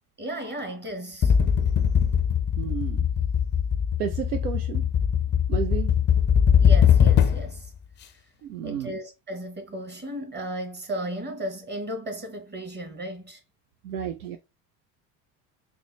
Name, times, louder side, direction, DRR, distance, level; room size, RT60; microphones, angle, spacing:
voice 1, 0.2-1.3 6.6-7.7 8.6-13.4, right 1 dB, 25° right, 1.2 m, -35 dB
sound 1, 1.2-7.6, left 8 dB, 25° left, 0.4 m, -21 dB
voice 2, 2.6-3.1 4.0-4.9 5.5-5.9 8.4-8.9 13.8-14.4, right 8 dB, 85° right, 0.5 m, -32 dB
3.7 x 2.1 x 3.0 m
hypercardioid pair, 70°, 44 cm